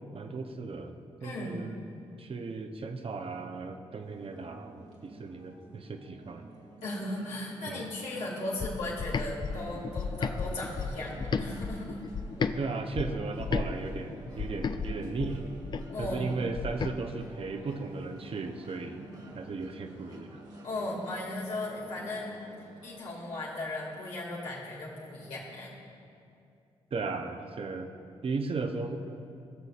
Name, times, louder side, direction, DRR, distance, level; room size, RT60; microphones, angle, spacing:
voice 1, 0.1-1.7 2.2-6.5 7.7-7.8 12.6-15.4 16.0-19.1 19.3-20.4 26.9-27.9 28.2-29.0, right 4 dB, 50° right, 6 dB, 0.7 m, -36 dB
voice 2, 1.2-1.7 6.8-12.0 15.9-16.4 20.6-22.3 22.8-25.9, left 2 dB, 85° left, -5 dB, 2.2 m, -37 dB
sound 1, 4.0-23.0, right 2 dB, 75° right, 1.9 m, -53 dB
sound 2, 7.1-23.1, equal, 30° right, 1.2 m, -53 dB
sound 3, 8.6-12.6 12.9-16.9, left 5 dB, 40° left, 0.4 m, -34 dB
18.0 x 6.6 x 2.4 m, 2.6 s
supercardioid pair, 50°, 12 cm